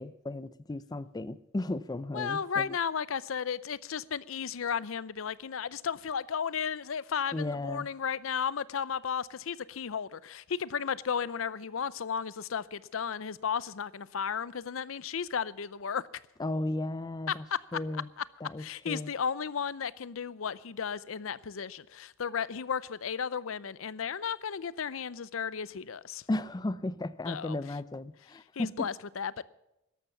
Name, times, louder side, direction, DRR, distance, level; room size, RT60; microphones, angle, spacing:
voice 1, 0.0-2.8 7.3-7.9 16.4-17.4 17.7-18.1 18.4-19.1 26.3-28.9, left 2 dB, 20° left, 0.4 m, -35 dB
voice 2, 2.1-16.1 17.3-17.6 18.2-18.3 18.6-26.2 27.3-27.6 28.6-29.4, left 7 dB, 85° left, 0.6 m, -34 dB
13.5 x 11.5 x 7.0 m
head